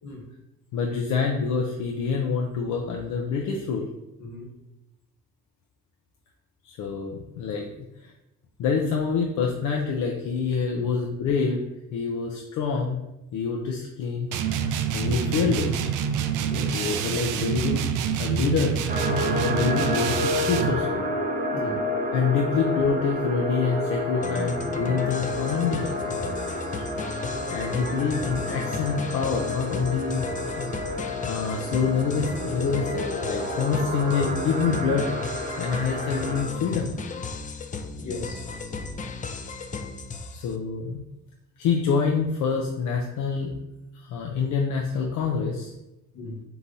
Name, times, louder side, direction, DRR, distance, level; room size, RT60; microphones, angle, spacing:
voice 1, 0.7-3.9 6.6-7.7 8.0-8.1 8.6-11.6 11.9-13.0 13.3-14.3 14.9-15.8 16.7-17.8 18.1-18.8 19.1-21.1 22.1-25.9 27.5-30.2 30.6-30.7 31.2-35.1 35.6-36.9 40.3-41.0 41.6-43.5 43.9-45.7, left 5 dB, 85° left, 0 dB, 0.6 m, -26 dB
sound 1, 14.3-20.8, right 8 dB, 90° right, 0.5 m, -27 dB
voice 2, 16.5-16.9 19.4-19.6 21.5-21.9 38.0-38.4 46.1-46.4, left 2 dB, 70° left, 0 dB, 1.2 m, -37 dB
sound 2, 18.9-36.4, left 1 dB, 25° right, 0.9 m, -30 dB
sound 3, 24.2-40.5, left 4 dB, 25° left, 0.4 m, -35 dB
3.8 x 2.9 x 4.0 m, 0.94 s
cardioid pair, 90°, 30 cm